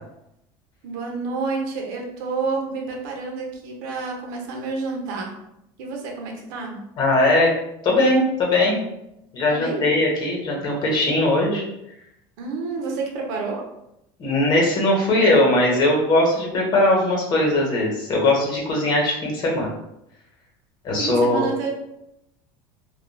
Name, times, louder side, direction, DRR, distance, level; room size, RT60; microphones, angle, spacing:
voice 1, 0.8-5.4 5.8-6.8 9.5-9.9 12.4-13.7 21.0-21.7, right 4 dB, 75° right, 0 dB, 0.8 m, -29 dB
voice 2, 7.0-7.5 7.8-8.8 9.3-11.6 14.2-19.7 20.8-21.5, left 1 dB, 40° left, -2 dB, 1.0 m, -20 dB
3.0 x 2.3 x 2.3 m, 0.83 s
supercardioid pair, 125°, 11 cm